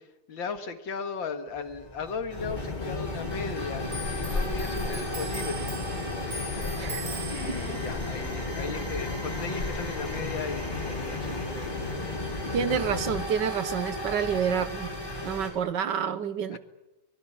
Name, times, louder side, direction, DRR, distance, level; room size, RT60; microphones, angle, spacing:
voice 1, 0.0-3.9 4.2-5.8 7.3-11.8 16.5-16.6, left 5 dB, 65° left, 9 dB, 2.3 m, -37 dB
sound 1, 1.5-15.5, left 1 dB, 10° left, 5.4 m, -37 dB
sound 2, 2.4-13.3, left 3 dB, 25° left, 1.2 m, -34 dB
Clock, 3.9-10.9 11.2-12.5 12.8-13.6, right 2 dB, 85° right, 4.6 m, -42 dB
voice 2, 12.5-14.9 15.2-16.6, right 7 dB, 60° right, 13 dB, 1.7 m, -28 dB
24.0 x 21.0 x 8.8 m, 0.97 s
omnidirectional pair, 2.4 m